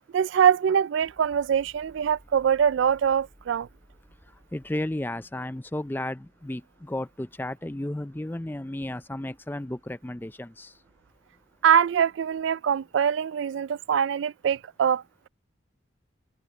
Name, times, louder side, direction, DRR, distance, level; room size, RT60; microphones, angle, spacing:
voice 1, 0.1-3.7 11.6-15.0, right 8 dB, 70° right, 0.3 m, -23 dB
sound 1, 1.0-12.9, equal, 15° right, 4.0 m, -60 dB
voice 2, 4.5-10.7, left 1 dB, 10° left, 0.4 m, -33 dB
head